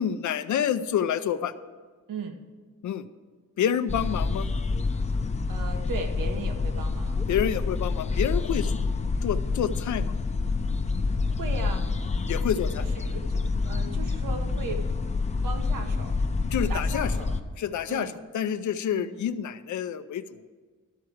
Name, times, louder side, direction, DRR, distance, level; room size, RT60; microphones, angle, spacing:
voice 1, 0.0-1.5 2.8-3.0 3.6-4.5 7.3-8.7 9.2-10.1 12.3-12.8 16.5-17.1 17.6-20.5, left 9 dB, 65° left, 12 dB, 0.6 m, -28 dB
sound 1, 3.9-17.4, left 4 dB, 20° left, 0.6 m, -27 dB
voice 2, 5.5-7.2 11.2-11.9 12.8-14.9 15.4-16.2 16.7-17.4 17.9-18.2 18.9-19.1, right 4 dB, 90° right, 4 dB, 1.2 m, -37 dB
13.0 x 4.6 x 8.5 m, 1.4 s
cardioid pair, 130°, 32 cm